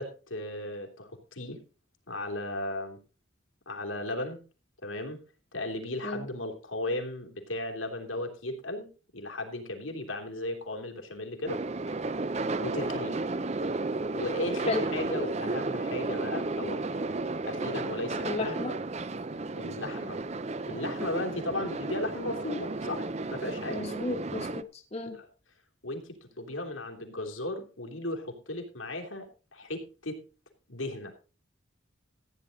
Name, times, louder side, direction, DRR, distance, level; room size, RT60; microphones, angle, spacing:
voice 1, 0.0-1.6 2.1-3.0 3.7-4.4 4.8-5.2 5.5-11.6 12.6-13.2 14.1-16.8 17.4-18.6 19.5-20.2 20.6-23.9 25.1-25.3 25.8-29.3 29.5-30.2 30.7-31.1, left 1 dB, 85° left, 2 dB, 3.2 m, -36 dB
sound 1, 11.5-24.6, right 3 dB, 35° right, 0.5 m, -33 dB
voice 2, 18.3-18.7 23.7-25.2, left 2 dB, 30° left, 3 dB, 1.2 m, -33 dB
15.0 x 9.4 x 4.0 m, 0.34 s
head